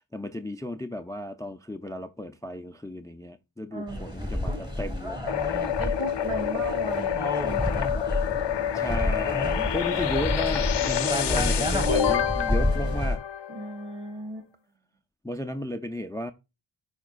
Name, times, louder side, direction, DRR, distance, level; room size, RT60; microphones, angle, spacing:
voice 1, 0.0-5.2 8.7-13.2 15.2-16.3, equal, 10° left, 0.3 m, -34 dB
voice 2, 3.7-4.2 5.8-7.8 13.5-14.5, right 3 dB, 70° right, 1.9 m, -36 dB
sound 1, 3.9-13.2, left 1 dB, 10° right, 1.9 m, -29 dB
sound 2, 5.3-13.9, left 10 dB, 55° left, 0.6 m, -28 dB
13.5 x 5.0 x 2.4 m
wide cardioid pair, 115°, 50 cm